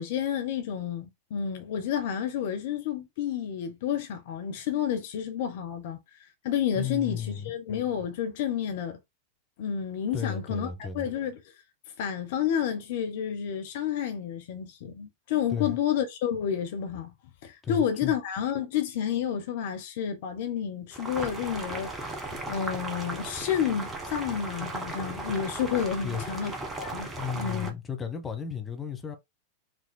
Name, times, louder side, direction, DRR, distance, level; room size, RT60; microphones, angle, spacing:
voice 1, 0.0-6.0 6.4-9.0 9.6-10.7 10.9-11.4 12.0-17.1 17.4-26.5 26.8-27.7, left 8 dB, 50° left, 0.8 m, -30 dB
voice 2, 6.7-7.5 10.1-11.1 15.5-15.8 17.6-18.1 26.0-26.2 27.2-29.2, left 7 dB, 20° left, 1.1 m, -34 dB
Boiling, 20.9-27.7, right 2 dB, 15° right, 1.3 m, -36 dB
5.3 x 3.7 x 2.2 m
figure-of-eight pair, 90°, 0 cm